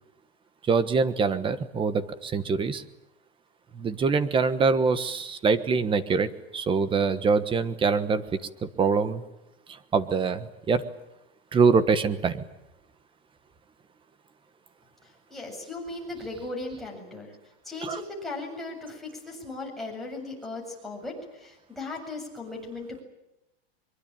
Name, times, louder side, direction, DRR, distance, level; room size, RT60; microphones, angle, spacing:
voice 1, 0.7-2.8 3.7-8.2 8.6-9.2 9.7-10.8 11.5-12.4 17.8-18.0, right 5 dB, 15° right, 13 dB, 1.3 m, -24 dB
voice 2, 15.0-17.3 17.6-23.0, left 2 dB, ahead, -2 dB, 7.7 m, -37 dB
23.5 x 23.5 x 9.1 m, 0.90 s
supercardioid pair, 145°, 32 cm